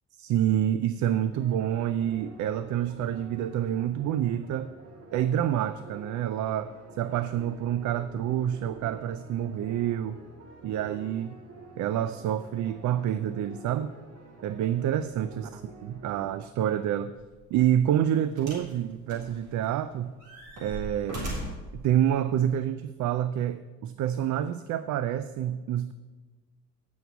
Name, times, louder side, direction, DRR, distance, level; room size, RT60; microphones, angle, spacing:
voice 1, 0.2-4.7 5.1-6.7 7.0-10.2 10.6-11.4 11.8-13.9 14.4-17.1 17.5-20.1 20.6-21.3 21.7-25.9, right 10 dB, 75° right, 13 dB, 0.5 m, -28 dB
sound 1, 1.2-16.2, right 2 dB, 55° right, 1.7 m, -49 dB
sound 2, 17.2-17.4 18.4-18.7 19.1-19.8 20.2-21.7 22.6-22.7, right 1 dB, 90° right, 3.5 m, -37 dB
9.2 x 6.3 x 7.0 m, 1.3 s
cardioid pair, 90°, 30 cm